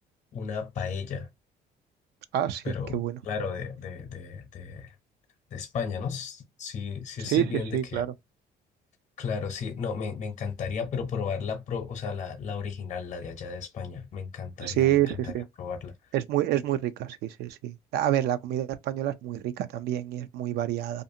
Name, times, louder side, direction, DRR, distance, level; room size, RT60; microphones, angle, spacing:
voice 1, 0.3-1.3 2.6-4.9 5.5-8.0 9.2-15.0 15.2-15.3 15.6-15.9, left 6 dB, 45° left, 0.8 m, -34 dB
voice 2, 2.3-3.2 7.2-8.1 14.6-15.4 16.1-21.0, right 12 dB, 75° right, 0.4 m, -28 dB
2.5 x 2.4 x 2.7 m
cardioid pair, 110°, 17 cm